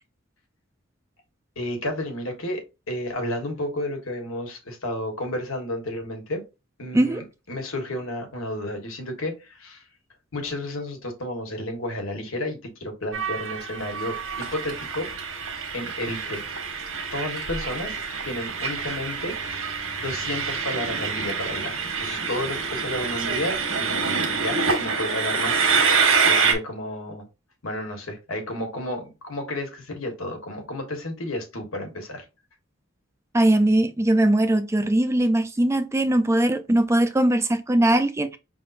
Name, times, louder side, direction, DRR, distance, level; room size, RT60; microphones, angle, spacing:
voice 1, 1.5-6.4 6.8-9.8 10.3-15.1 15.7-16.4 17.1-18.0 18.2-19.4 20.0-26.0 26.3-27.3 27.6-32.2, left 1 dB, 85° left, 1.5 m, -32 dB
Train, 13.1-26.5, right 5 dB, 85° right, 1.4 m, -26 dB
voice 2, 33.3-38.4, right 1 dB, 15° right, 0.4 m, -20 dB
5.3 x 3.5 x 2.6 m
head